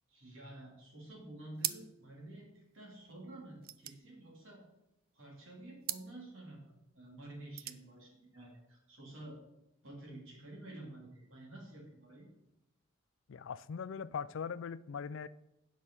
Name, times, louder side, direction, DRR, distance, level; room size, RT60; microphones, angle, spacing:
voice 1, 0.1-4.6 5.1-9.4 9.8-12.3, right 1 dB, 70° right, 3.3 m, -50 dB
sound 1, 1.5-2.2 2.5-2.6 2.8-5.0 5.8-6.1 7.3-7.9, right 13 dB, 45° right, 0.4 m, -41 dB
voice 2, 13.3-15.3, left 6 dB, 65° left, 0.4 m, -40 dB
8.9 x 6.1 x 5.6 m
head